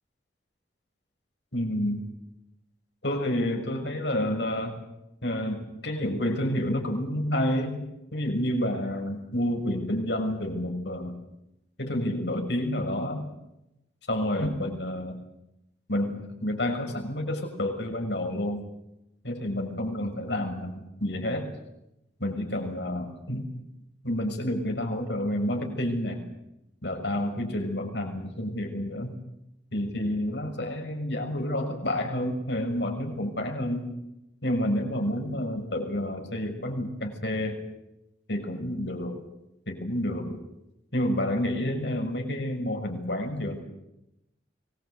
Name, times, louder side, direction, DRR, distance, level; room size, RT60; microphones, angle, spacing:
voice 1, 1.5-2.0 3.0-4.7 5.2-7.8 8.1-11.1 11.8-13.3 14.1-15.2 15.9-18.6 19.2-21.5 22.2-23.5 24.0-26.2 26.8-29.2 29.7-33.9 34.4-37.6 38.3-39.2 39.7-40.4 40.9-43.6, left 1 dB, 70° left, 2 dB, 6.4 m, -29 dB
24.0 x 21.5 x 8.2 m, 0.87 s
head